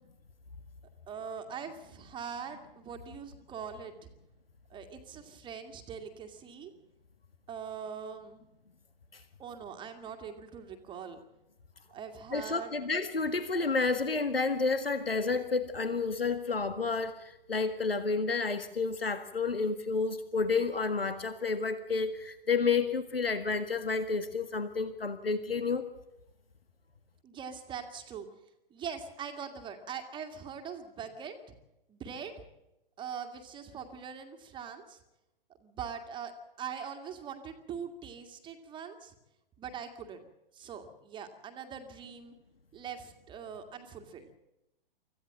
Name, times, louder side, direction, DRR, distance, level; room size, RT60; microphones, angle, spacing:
voice 1, 1.1-3.9 4.7-6.7 7.5-8.4 9.4-11.2 11.9-12.8 27.2-28.3 28.7-31.4 31.9-32.3 33.0-35.0 35.6-39.1 39.6-40.3 40.5-42.3 42.7-44.4, right 7 dB, 15° right, 6 dB, 2.0 m, -42 dB
voice 2, 12.3-25.9, left 4 dB, 80° left, 11 dB, 1.8 m, -30 dB
25.5 x 15.5 x 7.5 m, 0.91 s
figure-of-eight pair, 115°, 29 cm